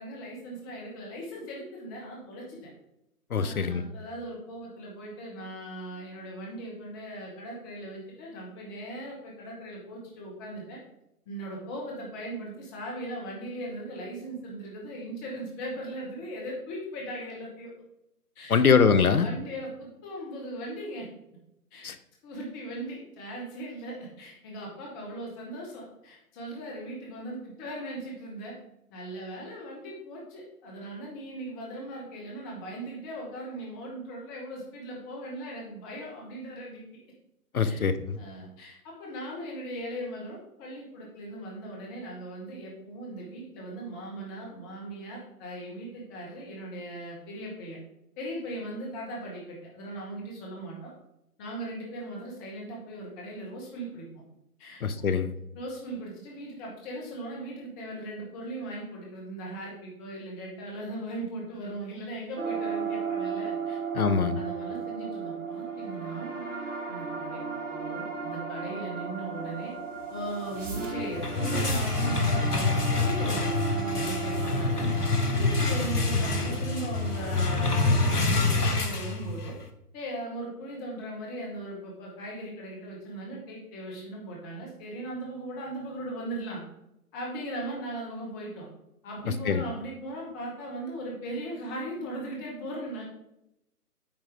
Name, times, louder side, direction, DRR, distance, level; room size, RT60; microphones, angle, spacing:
voice 1, 0.0-2.7 3.4-10.8 11.3-17.7 18.3-18.6 19.2-21.1 21.7-21.9 22.2-28.6 28.9-36.8 37.6-37.8 38.2-47.8 48.2-50.9 51.4-54.1 54.6-55.2 55.5-63.8 64.3-66.4 66.9-67.4 67.7-69.7 70.1-74.9 75.3-79.5 79.9-86.6 87.1-88.7 89.0-93.0, right 1 dB, 15° left, -2 dB, 1.1 m, -38 dB
voice 2, 3.3-3.8 18.5-19.3 21.8-22.0 37.5-38.2 54.8-55.3 63.9-64.4 89.5-89.6, left 5 dB, 70° left, 12 dB, 0.9 m, -23 dB
sound 1, 62.4-78.1, right 5 dB, 55° right, 2.2 m, -35 dB
sound 2, 71.0-79.6, left 3 dB, 90° left, 1.2 m, -27 dB
8.9 x 5.1 x 3.5 m, 0.82 s
figure-of-eight pair, 140°, 45 cm